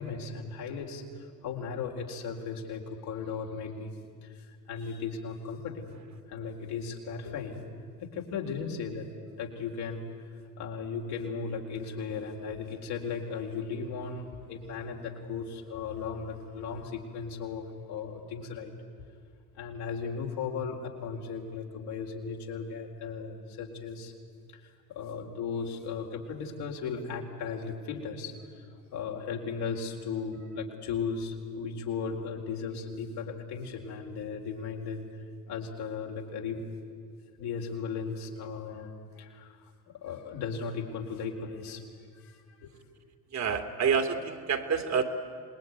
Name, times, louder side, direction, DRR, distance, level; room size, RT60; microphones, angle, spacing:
voice 1, 0.0-3.9 4.2-6.0 6.3-7.6 8.0-9.1 9.4-10.0 10.6-18.7 19.5-24.1 24.5-28.3 28.9-36.6 37.4-39.7 40.0-41.8 42.1-42.8, left 5 dB, 65° left, 1 dB, 4.3 m, -36 dB
voice 2, 43.3-45.0, right 6 dB, 40° right, 6 dB, 2.7 m, -28 dB
27.0 x 20.5 x 9.6 m, 2.1 s
hypercardioid pair, 80°, 42 cm